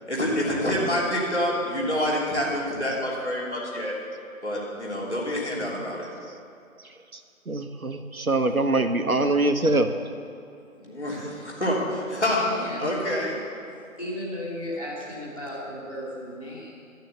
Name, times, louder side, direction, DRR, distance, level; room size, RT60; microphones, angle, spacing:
voice 1, 0.1-3.9 4.4-6.1 10.8-12.4 12.8-13.3, left 1 dB, 55° left, -5 dB, 3.3 m, -27 dB
voice 2, 7.5-9.9, right 2 dB, 90° right, 7 dB, 1.1 m, -23 dB
voice 3, 12.4-12.9 13.8-16.7, left 1 dB, 25° left, -7 dB, 2.5 m, -35 dB
12.5 x 6.5 x 8.1 m, 2.5 s
figure-of-eight pair, 175°, 42 cm